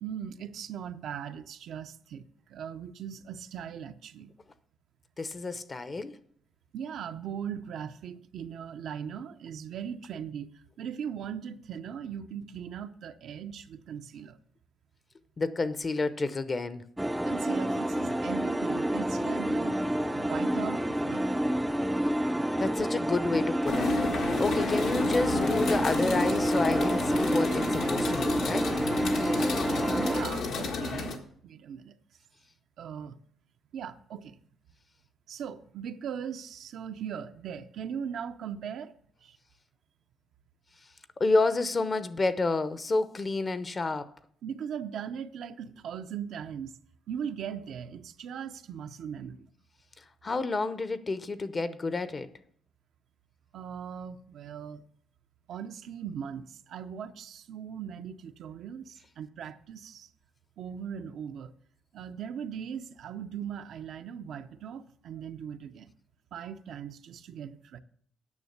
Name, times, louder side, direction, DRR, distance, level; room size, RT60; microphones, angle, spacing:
voice 1, 0.0-2.2 2.5-4.3 6.7-14.4 17.2-19.8 20.1-21.4 30.0-31.9 32.8-33.2 33.7-34.4 35.3-38.9 39.2-39.4 44.4-46.8 47.1-49.5 53.5-54.8 55.5-60.1 60.6-61.5 61.9-65.9 66.3-67.8, right 8 dB, 75° right, 0.6 m, -39 dB
voice 2, 5.2-6.2 15.4-16.8 22.6-23.9 24.4-28.7 41.2-44.1 50.2-52.3, left 3 dB, 35° left, 0.7 m, -29 dB
sound 1, 17.0-30.2, equal, 5° right, 0.5 m, -28 dB
sound 2, 23.6-31.2, left 4 dB, 80° left, 1.5 m, -32 dB
9.6 x 6.3 x 6.7 m
cardioid pair, 90°, 0 cm